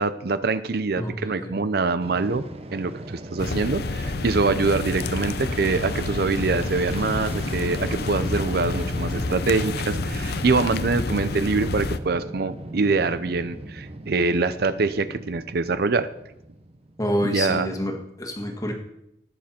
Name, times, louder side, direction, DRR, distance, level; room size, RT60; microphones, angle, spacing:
voice 1, 0.0-2.4 2.7-16.1 17.2-17.7, right 4 dB, 55° right, 13 dB, 0.5 m, -24 dB
Fixed-wing aircraft airplane, 2.0-17.2, right 1 dB, 35° right, 0.9 m, -38 dB
sound 1, 3.4-12.0, left 3 dB, 60° left, 0.6 m, -29 dB
voice 2, 17.0-18.7, equal, 20° left, 2 dB, 1.7 m, -27 dB
18.5 x 7.5 x 4.4 m, 0.83 s
head